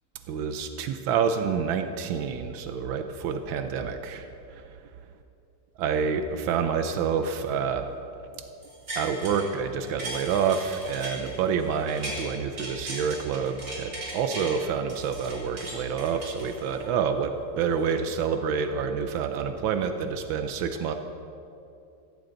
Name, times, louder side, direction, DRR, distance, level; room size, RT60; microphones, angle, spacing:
voice 1, 0.3-4.7 5.8-7.9 8.4-8.5 9.0-20.9, right 6 dB, 90° right, 7 dB, 1.5 m, -28 dB
sound 1, 8.6-9.5 9.8-12.3 12.6-14.5 14.9-16.9 17.4-17.5, right 1 dB, 50° right, 3.8 m, -37 dB
16.0 x 15.0 x 3.9 m, 2.7 s
omnidirectional pair, 2.1 m